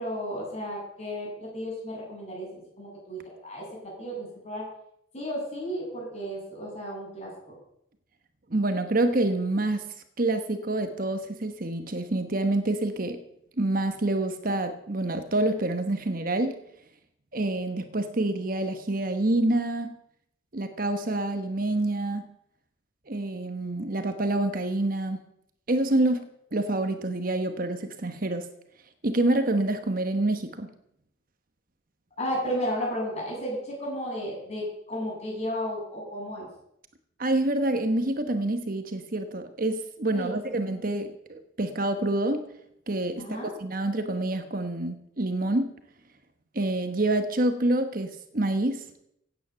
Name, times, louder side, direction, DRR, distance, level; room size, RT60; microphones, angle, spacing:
voice 1, 0.0-4.6 5.1-7.3 32.2-36.5 40.1-40.3 40.6-40.7 43.2-43.5, equal, 35° left, -2 dB, 7.7 m, -33 dB
voice 2, 8.5-13.2 13.6-16.5 17.3-20.0 20.5-22.3 23.1-25.2 25.7-26.3 26.5-28.5 29.0-30.7 37.2-42.5 42.9-45.7 46.5-48.9, right 2 dB, 45° right, 8 dB, 1.1 m, -27 dB
16.5 x 9.3 x 6.9 m, 0.76 s
head